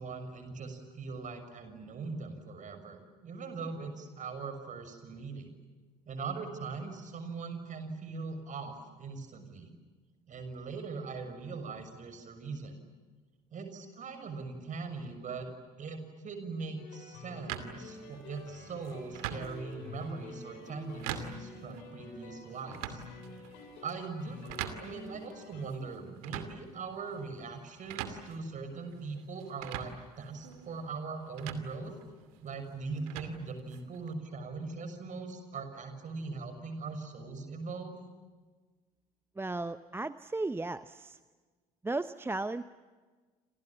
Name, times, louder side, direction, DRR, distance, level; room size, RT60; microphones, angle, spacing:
voice 1, 0.0-5.6 6.0-9.7 10.3-12.8 13.5-15.5 15.8-23.0 23.8-31.9 32.4-38.0, right 4 dB, 40° right, 9 dB, 6.5 m, -41 dB
sound 1, 16.8-25.6, left 3 dB, 60° left, 7.9 m, -48 dB
sound 2, 17.5-34.1, right 10 dB, 65° right, 2.5 m, -45 dB
voice 2, 39.4-41.2 41.8-42.6, right 2 dB, 10° right, 14 dB, 0.9 m, -35 dB
28.5 x 28.0 x 7.4 m, 1.4 s
figure-of-eight pair, 60°, 20 cm